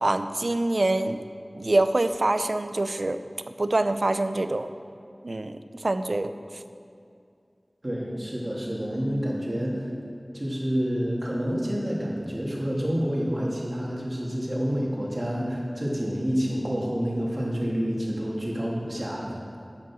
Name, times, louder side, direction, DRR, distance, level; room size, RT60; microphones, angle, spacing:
voice 1, 0.0-1.2 1.5-3.2 3.6-4.7 5.2-6.3, right 2 dB, 70° right, 10 dB, 0.5 m, -25 dB
voice 2, 7.8-9.9 10.3-19.4, equal, 40° right, -4 dB, 2.7 m, -28 dB
11.0 x 8.6 x 6.2 m, 2.4 s
wide cardioid pair, 50°, 0 cm